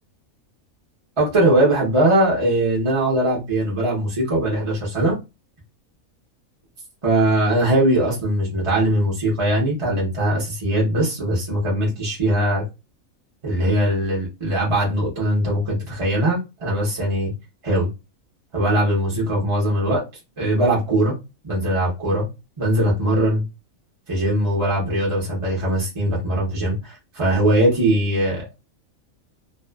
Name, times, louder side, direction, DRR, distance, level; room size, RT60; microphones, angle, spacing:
voice 1, 1.2-5.2 7.0-12.6 13.4-17.3 17.6-17.9 18.5-20.0 20.4-21.1 21.4-22.3 22.6-23.4 24.1-28.5, right 1 dB, 30° right, 0.6 m, -20 dB
2.5 x 2.3 x 2.2 m
omnidirectional pair, 1.4 m